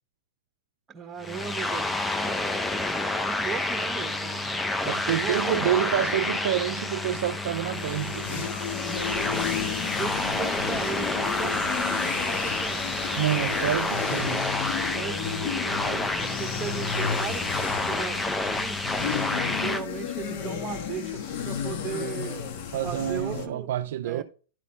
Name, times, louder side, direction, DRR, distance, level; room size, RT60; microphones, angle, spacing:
voice 1, 0.9-2.5 3.2-4.6 5.0-5.8 8.9-13.0 14.8-18.8 19.4-22.5 22.8-23.7 24.0-24.2, right 7 dB, 20° right, 1.4 m, -37 dB
sound 1, 1.2-19.8, left 2 dB, 10° left, 0.6 m, -29 dB
voice 2, 4.8-8.5 13.2-14.5 22.7-24.2, right 11 dB, 70° right, 0.4 m, -28 dB
sound 2, 7.7-23.5, left 7 dB, 60° left, 1.2 m, -33 dB
12.0 x 4.2 x 4.1 m
hypercardioid pair, 115°, 0 cm